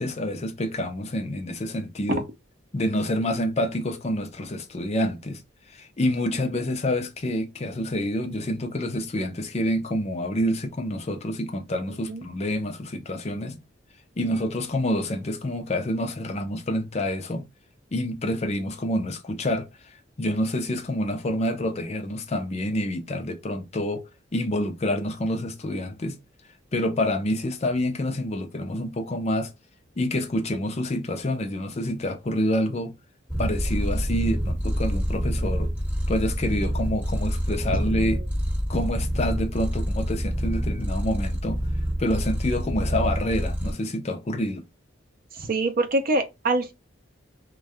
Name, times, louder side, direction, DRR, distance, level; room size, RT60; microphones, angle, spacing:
voice 1, 0.0-2.2 2.7-5.4 5.7-13.6 14.2-17.5 17.9-19.7 20.2-24.0 24.3-26.2 26.7-29.5 30.0-33.0 33.4-35.7 36.1-38.2 38.7-41.6 42.0-44.7, left 1 dB, 35° left, 0.5 m, -27 dB
Purr, 33.3-43.7, equal, 10° right, 1.4 m, -27 dB
voice 2, 37.8-38.3 45.3-46.7, right 2 dB, 50° right, 0.6 m, -25 dB
2.6 x 2.3 x 3.4 m
head